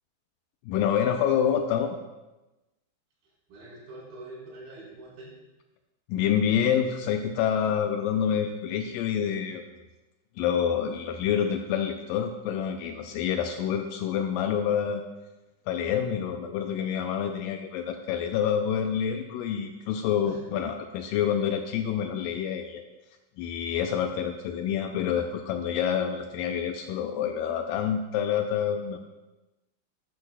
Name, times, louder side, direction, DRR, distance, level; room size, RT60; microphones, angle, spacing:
voice 1, 0.7-2.0 6.1-9.6 10.4-15.0 15.7-22.8 23.4-29.0, left 8 dB, 90° left, 5 dB, 1.9 m, -27 dB
voice 2, 3.2-5.3 20.2-20.5, right 2 dB, 75° right, -7 dB, 5.8 m, -45 dB
12.0 x 11.0 x 2.2 m, 1.1 s
omnidirectional pair, 4.4 m